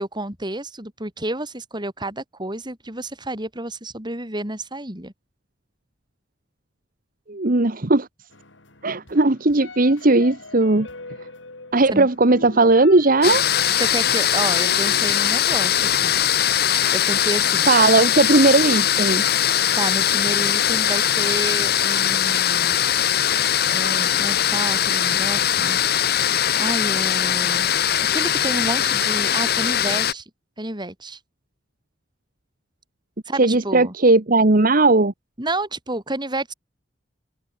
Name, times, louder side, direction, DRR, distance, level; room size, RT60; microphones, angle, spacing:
voice 1, 0.0-5.1 11.9-12.1 13.8-16.1 16.9-17.7 19.8-22.8 23.7-25.8 26.6-27.7 28.1-30.2 30.6-31.2 33.3-33.9 35.4-36.5, right 2 dB, 25° right, 5.8 m, -30 dB
voice 2, 7.3-8.1 8.8-10.9 11.7-13.4 17.7-19.2 33.4-35.1, right 2 dB, 50° right, 1.4 m, -17 dB
sound 1, 8.3-15.0, left 2 dB, 85° left, 5.0 m, -40 dB
sound 2, 13.2-30.1, left 10 dB, 55° left, 1.0 m, -20 dB
open air
head